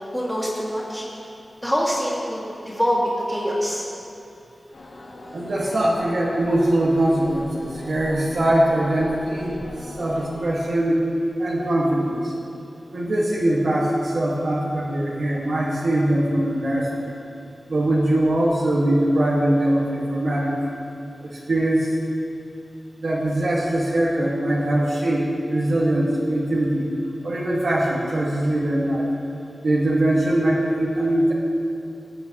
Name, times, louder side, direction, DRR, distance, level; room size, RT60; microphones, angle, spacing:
voice 1, 0.1-1.1 1.6-3.8, equal, ahead, -7 dB, 2.1 m, -24 dB
sound 1, 4.7-10.5, left 1 dB, 75° left, 1.4 m, -40 dB
voice 2, 5.3-9.6 9.9-11.1 11.4-12.3 12.9-17.1 17.7-20.6 21.2-21.9 23.0-26.9 27.2-29.1 29.6-31.3, right 1 dB, 80° right, -6 dB, 1.7 m, -22 dB
18.5 x 8.6 x 3.0 m, 2.8 s
wide cardioid pair, 100°, 0 cm